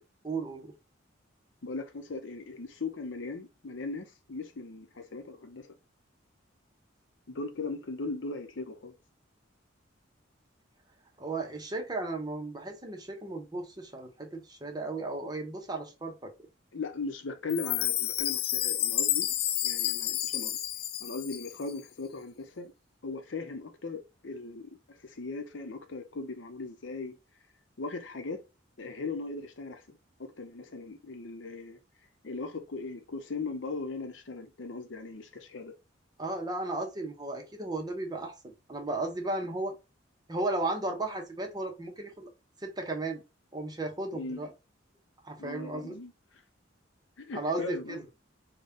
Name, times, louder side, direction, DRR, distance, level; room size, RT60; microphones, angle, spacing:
voice 1, 0.2-0.7 11.2-16.3 36.2-39.8 40.3-42.3 42.6-43.2 43.5-44.5 45.2-45.9 47.3-48.1, right 2 dB, 20° right, 0.8 m, -35 dB
voice 2, 1.6-5.8 7.3-9.0 16.7-19.3 19.6-20.6 21.0-22.7 23.0-27.2 27.8-28.4 28.8-31.8 32.2-35.8 44.1-44.4 45.4-46.1 47.2-48.0, left 3 dB, 70° left, 0.7 m, -38 dB
Chime, 17.5-21.7, left 12 dB, 50° left, 0.3 m, -30 dB
4.1 x 2.2 x 3.5 m
head